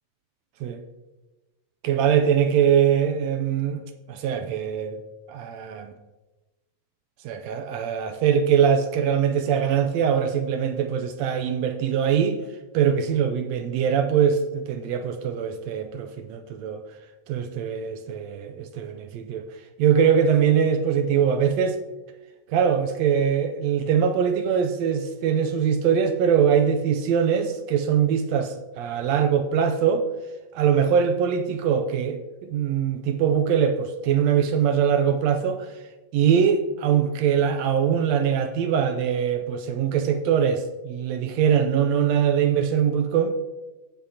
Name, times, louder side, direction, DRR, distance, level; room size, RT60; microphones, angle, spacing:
voice 1, 1.8-3.8 4.1-5.0 5.3-5.9 7.2-12.4 12.7-16.8 17.3-19.5 19.8-21.8 22.5-30.0 30.5-35.7 36.1-43.3, right 8 dB, 80° right, 7 dB, 1.6 m, -22 dB
16.5 x 5.7 x 2.8 m, 1.1 s
omnidirectional pair, 3.5 m